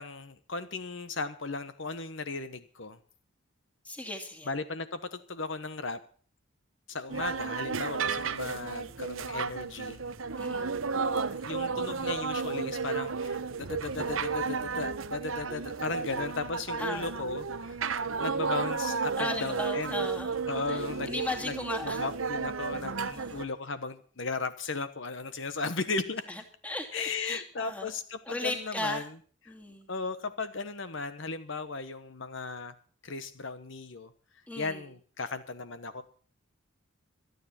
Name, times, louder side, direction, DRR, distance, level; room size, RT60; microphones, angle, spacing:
voice 1, 0.0-3.0 4.4-6.0 6.9-10.0 11.4-17.8 18.2-20.0 20.5-21.1 21.4-21.5 22.0-26.3 26.9-29.0 29.9-32.7 33.0-34.1 34.6-36.0, left 3 dB, 65° left, 11 dB, 1.2 m, -36 dB
voice 2, 3.8-4.5 10.4-10.7 16.8-17.1 19.2-20.3 20.7-22.0 23.1-23.4 26.3-27.9 28.3-29.1 29.5-29.9 34.5-34.9, left 1 dB, 5° left, 2 dB, 2.7 m, -36 dB
sound 1, 7.1-23.4, right 5 dB, 75° right, 0.9 m, -33 dB
26.0 x 9.5 x 4.3 m, 0.43 s
head